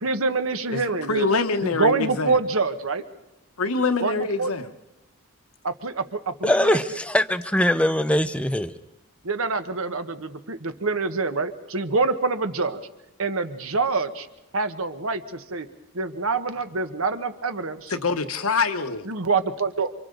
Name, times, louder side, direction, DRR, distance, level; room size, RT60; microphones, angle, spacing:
voice 1, 0.0-1.3 1.6-3.0 4.0-4.5 5.6-6.8 9.2-12.8 13.2-14.3 14.5-15.7 15.9-17.9 19.1-19.9, right 3 dB, 75° right, 9 dB, 1.2 m, -26 dB
voice 2, 1.1-2.4 3.6-4.7 17.9-19.1, left 4 dB, 80° left, 8 dB, 1.1 m, -25 dB
voice 3, 6.4-8.7, left 1 dB, 5° left, 11 dB, 0.6 m, -22 dB
28.5 x 25.0 x 3.9 m, 0.98 s
head